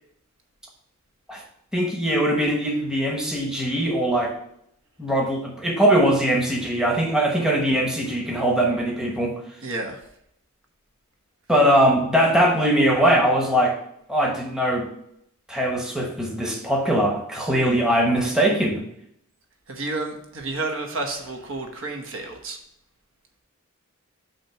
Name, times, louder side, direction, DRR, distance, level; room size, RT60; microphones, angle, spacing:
voice 1, 1.7-4.4 5.0-9.4 11.5-13.8 14.1-14.9 15.5-18.8, right 1 dB, 5° right, -1 dB, 1.0 m, -21 dB
voice 2, 9.6-10.0 19.7-22.6, right 2 dB, 60° right, 3 dB, 1.0 m, -30 dB
8.5 x 2.9 x 5.8 m, 0.74 s
head